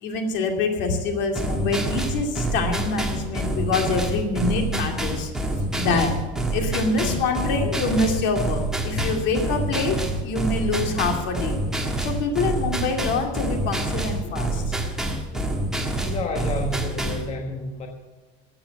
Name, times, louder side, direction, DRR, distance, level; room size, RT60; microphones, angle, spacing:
voice 1, 0.0-5.3 5.8-6.1 6.5-11.6 12.0-14.7 15.3-15.4, left 3 dB, 60° left, 4 dB, 2.5 m, -25 dB
sound 1, 1.3-17.3, right 1 dB, 5° right, 1.5 m, -27 dB
voice 2, 16.0-17.9, left 2 dB, 30° left, 3 dB, 1.3 m, -30 dB
14.0 x 8.7 x 7.3 m, 1.3 s
cardioid pair, 150°, 21 cm